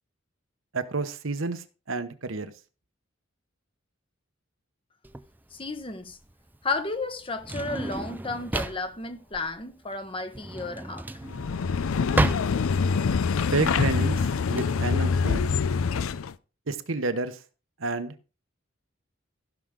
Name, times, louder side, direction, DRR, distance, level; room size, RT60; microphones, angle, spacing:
voice 1, 0.7-2.5 13.5-14.2 14.5-15.5 16.7-17.4 17.8-18.1, right 3 dB, 70° right, 1.0 m, -29 dB
Drawer open or close, 5.0-14.6, right 1 dB, 10° right, 0.4 m, -32 dB
voice 2, 5.5-6.2 6.6-11.2, left 3 dB, 25° left, 1.0 m, -33 dB
sound 1, 11.3-16.3, left 5 dB, 90° left, 0.5 m, -25 dB
15.5 x 6.2 x 3.7 m
head